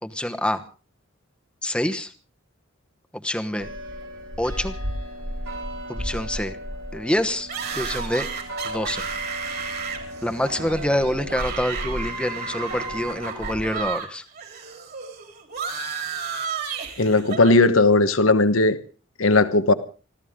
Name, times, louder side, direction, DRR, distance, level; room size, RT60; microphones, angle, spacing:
voice 1, 0.0-0.6 1.6-2.1 3.1-3.7 4.4-4.7 5.9-6.6 6.9-7.5 7.8-8.3 8.6-9.1 10.2-14.2, left 1 dB, 5° left, 8 dB, 1.0 m, -26 dB
sound 1, 3.6-13.9, equal, 85° right, 3.7 m, -35 dB
sound 2, 7.5-14.1 14.3-17.5, right 6 dB, 50° right, 3.6 m, -32 dB
voice 2, 17.0-18.8 19.2-19.7, left 2 dB, 85° left, 11 dB, 1.2 m, -17 dB
25.5 x 14.5 x 3.7 m, 0.36 s
head